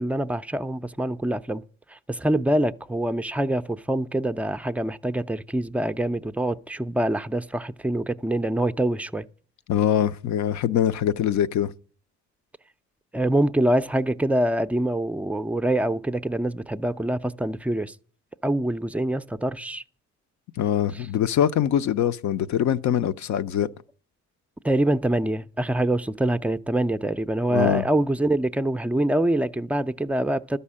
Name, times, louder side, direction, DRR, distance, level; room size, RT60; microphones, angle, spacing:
voice 1, 0.0-1.6 1.9-9.3 13.1-17.9 18.4-19.8 20.9-21.1 24.6-30.6, right 1 dB, 5° right, 0.4 m, -25 dB
voice 2, 9.7-11.7 20.6-23.7 27.5-27.9, left 10 dB, 70° left, 0.7 m, -23 dB
12.5 x 5.6 x 8.5 m
cardioid pair, 90°, 30 cm